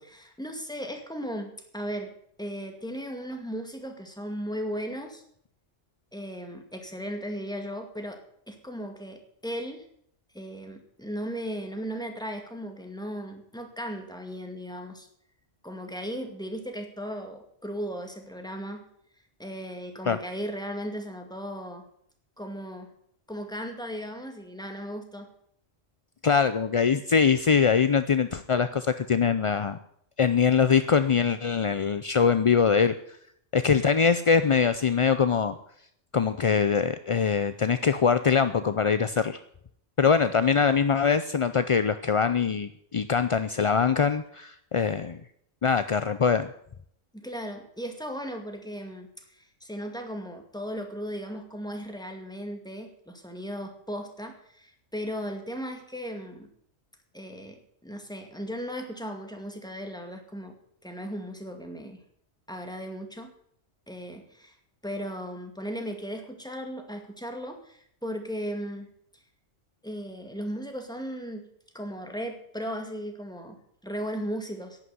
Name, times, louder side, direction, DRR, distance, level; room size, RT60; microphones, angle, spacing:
voice 1, 0.1-2.1 2.4-5.2 6.1-8.2 8.5-9.9 10.3-15.1 15.6-18.8 19.4-21.8 22.4-22.9 23.3-25.3 47.1-56.5 57.1-60.6 60.8-62.0 62.5-63.3 63.9-64.6 64.8-68.9 69.8-71.5 71.7-73.6 73.8-74.8, equal, 5° left, 4 dB, 2.1 m, -36 dB
voice 2, 26.2-29.8 30.2-32.9 33.5-35.5 36.1-39.4 40.0-45.2 45.6-46.5, left 6 dB, 45° left, 11 dB, 0.4 m, -23 dB
11.5 x 9.2 x 9.5 m, 0.68 s
omnidirectional pair, 1.2 m